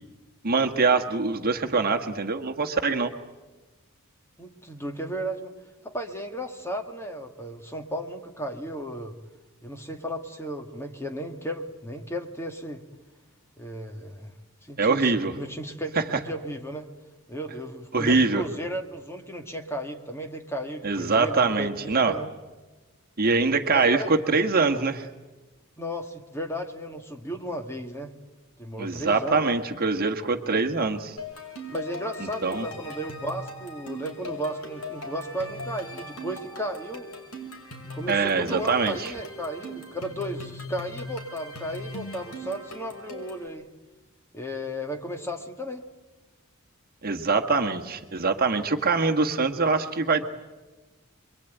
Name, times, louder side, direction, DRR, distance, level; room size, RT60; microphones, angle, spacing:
voice 1, 0.4-3.1 14.8-15.3 16.1-16.2 17.9-18.4 20.8-22.1 23.2-25.1 28.8-31.2 32.4-32.7 38.1-39.1 47.0-50.3, right 4 dB, 40° right, 5 dB, 1.6 m, -23 dB
voice 2, 4.4-5.5 5.8-9.2 9.6-12.8 13.6-14.3 14.6-16.9 17.3-22.3 23.7-24.1 25.8-28.1 28.6-29.4 31.7-37.1 37.9-43.7 44.3-45.8, equal, 10° left, 4 dB, 2.0 m, -34 dB
sound 1, 31.2-43.5, left 1 dB, 85° left, 6.1 m, -40 dB
27.0 x 23.0 x 9.2 m, 1.2 s
head